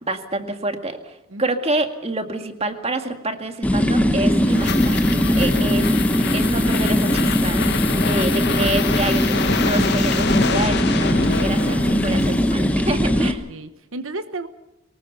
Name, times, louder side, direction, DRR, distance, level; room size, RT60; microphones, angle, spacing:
voice 1, 0.0-5.0 5.4-5.9 6.3-7.6 8.1-13.4, right 2 dB, 30° right, 6 dB, 1.9 m, -27 dB
sound 1, 3.6-13.3, equal, 5° left, 1.2 m, -20 dB
sound 2, 4.0-12.8, left 4 dB, 50° left, 1.4 m, -26 dB
voice 2, 13.1-14.5, right 2 dB, 65° right, 10 dB, 1.1 m, -33 dB
23.5 x 19.5 x 6.9 m, 0.94 s
head